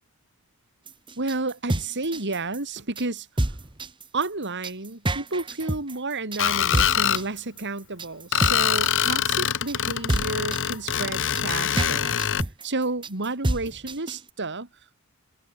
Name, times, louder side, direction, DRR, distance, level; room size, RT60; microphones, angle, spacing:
sound 1, 0.9-14.3, right 1 dB, 20° right, 1.2 m, -29 dB
voice 1, 1.2-3.3 4.1-12.2 12.6-14.7, right 3 dB, 55° right, 3.0 m, -31 dB
Screech, 6.4-7.2 8.3-12.4, left 9 dB, 60° left, 1.3 m, -24 dB
head